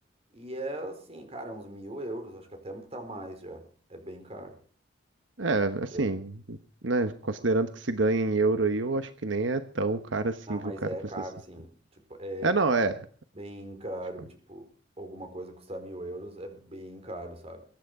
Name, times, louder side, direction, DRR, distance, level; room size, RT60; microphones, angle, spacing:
voice 1, 0.3-3.6 3.9-4.6 5.9-6.1 10.5-11.7 12.1-12.5 13.3-14.7 15.0-17.6, right 1 dB, 35° right, 5 dB, 4.4 m, -39 dB
voice 2, 5.4-6.6 6.8-10.6 12.4-13.1, right 3 dB, 90° right, 9 dB, 1.1 m, -27 dB
22.5 x 10.5 x 4.9 m, 0.43 s
head